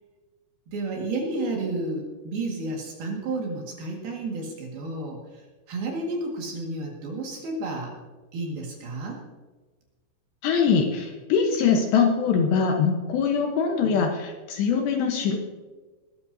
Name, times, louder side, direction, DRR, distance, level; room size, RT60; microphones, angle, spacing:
voice 1, 0.7-7.9 8.3-9.2, right 2 dB, 60° right, -1 dB, 3.3 m, -31 dB
voice 2, 10.4-15.4, left 6 dB, 70° left, 2 dB, 2.9 m, -23 dB
21.0 x 13.5 x 2.7 m, 1.3 s
omnidirectional pair, 5.8 m